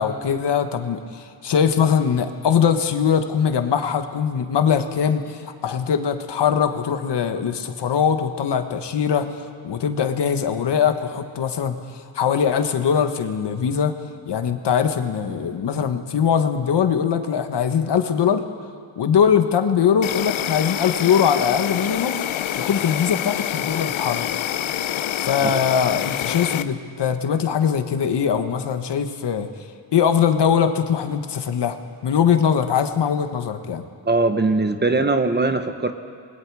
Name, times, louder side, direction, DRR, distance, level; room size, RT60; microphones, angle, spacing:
voice 1, 0.0-11.8 12.1-13.9 14.3-18.4 19.0-22.3 22.5-24.3 25.2-29.5 29.9-33.8, left 7 dB, 60° left, 7 dB, 1.4 m, -21 dB
Insect, 20.0-26.6, left 11 dB, 85° left, 0.8 m, -26 dB
voice 2, 34.1-35.9, right 3 dB, 20° right, 7 dB, 1.0 m, -21 dB
27.5 x 21.0 x 4.8 m, 2.3 s
wide cardioid pair, 145°, 46 cm